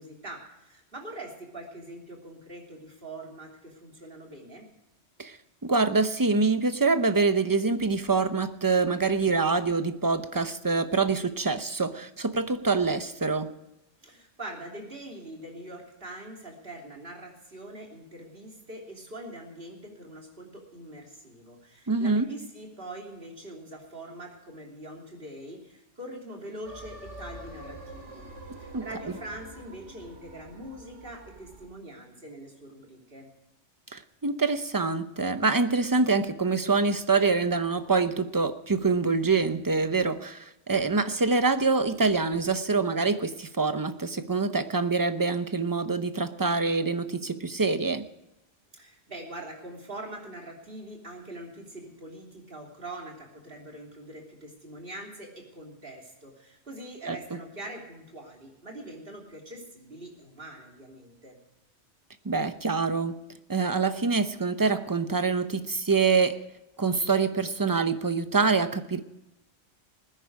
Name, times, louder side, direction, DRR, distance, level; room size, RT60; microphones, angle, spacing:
voice 1, 0.0-4.7 14.0-28.3 28.6-33.3 48.7-61.4, right 1 dB, 50° right, 3.4 m, -43 dB
voice 2, 5.6-13.5 21.9-22.3 28.7-28.9 33.9-48.1 57.1-57.2 62.2-63.2 63.5-66.4 66.8-69.0, right 4 dB, 20° right, 0.6 m, -25 dB
sound 1, 26.6-31.7, right 1 dB, 80° right, 2.5 m, -46 dB
20.0 x 10.0 x 4.7 m
omnidirectional pair, 1.2 m